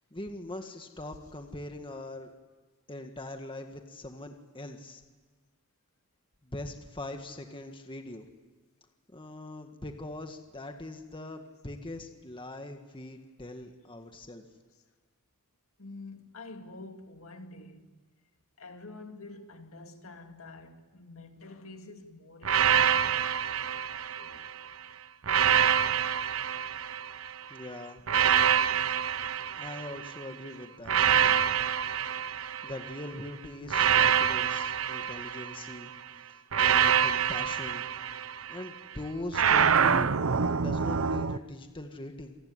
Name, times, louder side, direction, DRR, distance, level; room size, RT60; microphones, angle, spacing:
voice 1, 0.1-2.3 2.9-5.0 6.4-8.3 9.1-14.4 27.5-28.0 29.6-31.5 32.6-35.9 36.3-37.9 38.5-40.2 40.6-42.4, left 1 dB, 25° left, 1.8 m, -41 dB
voice 2, 15.8-18.0 18.6-24.7, left 2 dB, 65° left, 2.4 m, -48 dB
sound 1, 22.4-24.6 25.2-27.4 28.1-30.2 30.9-33.0 33.7-35.8 36.5-38.7 39.3-41.4, right 8 dB, 65° right, 0.7 m, -26 dB
28.0 x 19.5 x 9.7 m
head